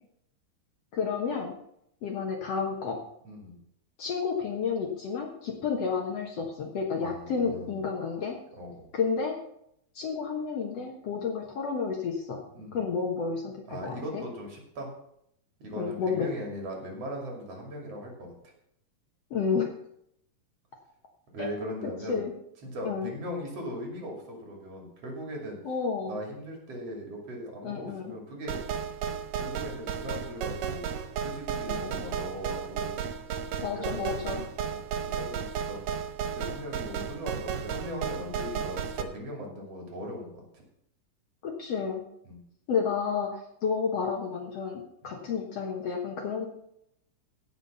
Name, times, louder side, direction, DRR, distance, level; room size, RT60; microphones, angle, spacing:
voice 1, 0.9-1.6 2.0-3.0 4.0-8.4 8.9-9.4 10.0-12.4 12.7-14.2 15.8-16.3 19.3-19.7 21.4-21.5 22.1-22.3 22.8-23.1 25.6-26.2 27.6-28.1 31.7-32.0 33.6-34.4 41.4-42.0 42.7-46.5, left 5 dB, 60° left, 1 dB, 2.1 m, -31 dB
voice 2, 3.3-3.6 7.0-7.8 8.6-8.9 12.5-13.0 13.7-14.9 15.6-18.3 21.3-22.2 22.6-25.6 26.1-28.6 29.4-30.8 31.2-33.0 33.8-34.2 34.7-35.9 36.3-40.6 42.3-42.4 45.0-45.1, equal, 50° right, 0 dB, 3.6 m, -39 dB
sound 1, 28.5-39.0, right 7 dB, 85° right, 2.5 m, -34 dB
16.5 x 5.8 x 5.5 m, 0.75 s
omnidirectional pair, 3.7 m